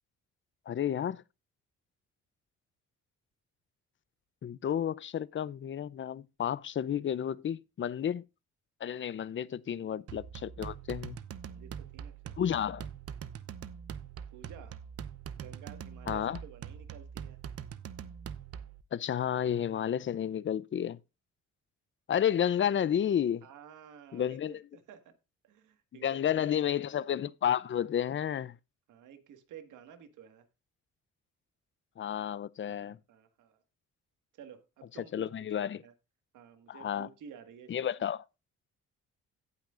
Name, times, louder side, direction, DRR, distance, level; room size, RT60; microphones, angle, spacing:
voice 1, 0.7-1.2 4.4-8.2 8.8-11.2 12.4-12.9 16.1-16.4 18.9-21.0 22.1-23.5 24.1-24.6 26.0-28.6 32.0-33.0 35.1-35.8 36.7-37.1 37.7-38.2, left 9 dB, 40° left, 0.6 m, -31 dB
sound 1, 10.1-18.8, right 8 dB, 50° right, 0.8 m, -43 dB
voice 2, 11.4-12.6 14.3-14.8 15.4-17.4 23.4-25.1 25.4-26.7 28.9-30.5 32.7-33.6 34.3-35.3 35.6-35.9 36.3-37.9, right 8 dB, 80° right, 1.8 m, -52 dB
17.0 x 5.9 x 2.5 m
cardioid pair, 90°, 30 cm